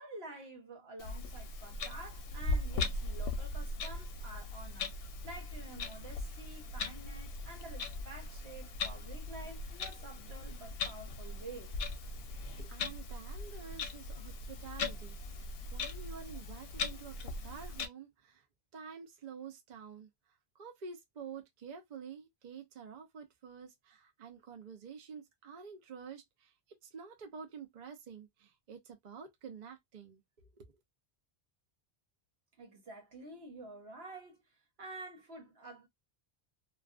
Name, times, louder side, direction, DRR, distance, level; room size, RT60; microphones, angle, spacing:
voice 1, 0.0-4.9 5.2-11.7 32.6-34.4 34.8-35.9, right 2 dB, 70° right, 1.1 m, -49 dB
Clock, 1.0-17.9, left 3 dB, 70° left, 0.7 m, -39 dB
voice 2, 12.6-18.4 18.7-20.1 20.6-26.5 26.8-30.2 30.6-30.7, right 6 dB, 50° right, 0.6 m, -49 dB
2.3 x 2.3 x 2.3 m
omnidirectional pair, 1.1 m